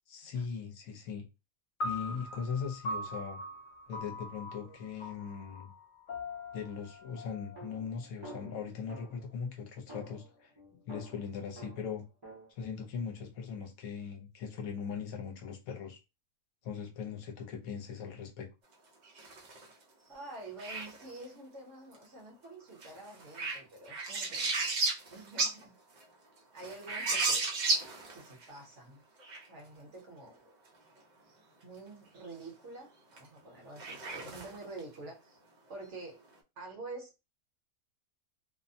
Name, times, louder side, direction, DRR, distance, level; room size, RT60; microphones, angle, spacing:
voice 1, 0.1-1.2 1.8-3.4 3.9-5.7 6.5-10.5 10.9-12.0 12.5-16.0 16.6-18.5, left 6 dB, 75° left, 1.0 m, -39 dB
sound 1, 1.8-8.3, left 1 dB, 55° left, 0.5 m, -42 dB
sound 2, 7.5-9.3 9.9-12.5, equal, 25° right, 0.5 m, -50 dB
sound 3, 19.0-19.7 20.6-21.2 22.8-25.6 26.0-26.1 26.6-28.4 29.2-29.4 33.2-33.3 33.8-34.8, right 3 dB, 80° right, 0.4 m, -33 dB
voice 2, 20.1-24.7 25.1-25.8 26.5-27.4 28.1-29.0 29.5-30.5 31.6-35.4 35.7-36.2 36.6-37.2, right 2 dB, 60° right, 1.0 m, -48 dB
2.7 x 2.0 x 2.6 m
omnidirectional pair, 1.6 m